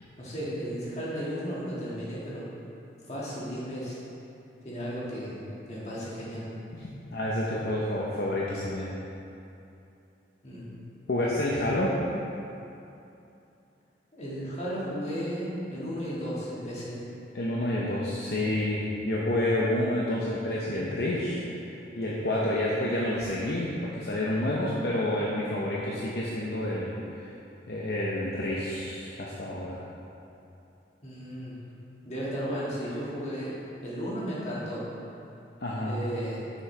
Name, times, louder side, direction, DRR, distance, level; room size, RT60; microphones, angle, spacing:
voice 1, 0.2-2.4 3.1-4.0 4.6-6.5 10.4-10.7 14.1-17.0 31.0-31.6 32.0-33.6 33.8-34.9 35.8-36.5, equal, 35° left, -7 dB, 1.8 m, -34 dB
voice 2, 6.7-8.9 11.1-11.9 17.3-27.3 27.7-29.8 35.6-35.9, left 1 dB, 55° left, -5 dB, 0.7 m, -29 dB
9.6 x 6.2 x 3.2 m, 2.8 s
head